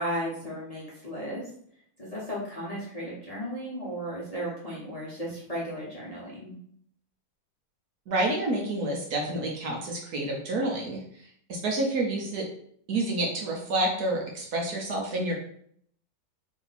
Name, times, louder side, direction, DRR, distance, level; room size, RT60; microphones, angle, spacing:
voice 1, 0.0-1.5 2.0-6.5, equal, 25° left, -7 dB, 0.9 m, -35 dB
voice 2, 8.1-12.5 12.9-15.4, right 1 dB, 65° right, -1 dB, 1.2 m, -29 dB
3.5 x 2.7 x 4.0 m, 0.64 s
omnidirectional pair, 2.0 m